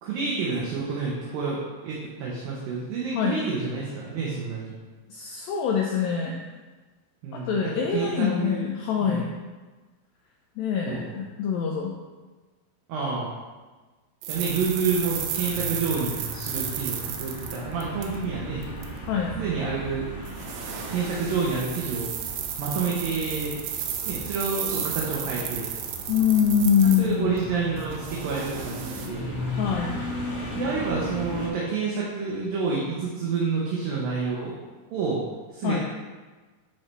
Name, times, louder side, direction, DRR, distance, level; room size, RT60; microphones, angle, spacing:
voice 1, 0.0-4.7 7.2-8.7 9.0-9.3 10.9-11.1 12.9-13.3 14.3-18.6 19.4-20.2 20.9-22.1 22.6-23.6 24.1-25.7 27.0-29.5 30.5-34.5 34.9-35.2 35.5-35.8, right 4 dB, 70° right, -5 dB, 2.5 m, -29 dB
voice 2, 5.1-6.4 7.3-9.3 10.6-11.9 19.1-19.4 26.1-27.4 29.5-30.0 35.6-35.8, left 7 dB, 85° left, 0 dB, 2.0 m, -24 dB
sound 1, 14.2-18.3 18.6-18.9 20.3-27.4 27.8-29.1, right 9 dB, 85° right, 2.9 m, -33 dB
sound 2, 14.3-31.5, equal, 35° left, 2.2 m, -37 dB
12.5 x 4.7 x 3.4 m, 1.3 s
omnidirectional pair, 4.9 m